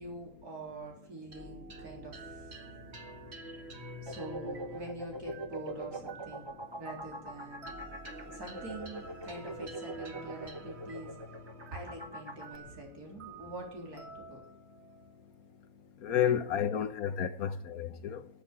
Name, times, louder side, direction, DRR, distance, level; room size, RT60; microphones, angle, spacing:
voice 1, 0.0-2.5 4.0-6.4 6.8-7.8 8.2-11.1 11.7-14.4 16.4-16.5 17.5-17.6, right 1 dB, 85° right, 4.3 m, -45 dB
sound 1, 1.3-16.0, right 1 dB, 45° right, 2.0 m, -49 dB
sound 2, 4.1-12.5, right 2 dB, 20° right, 1.2 m, -43 dB
voice 2, 16.0-18.3, left 9 dB, 75° left, 1.6 m, -31 dB
13.5 x 8.3 x 8.9 m
omnidirectional pair, 1.6 m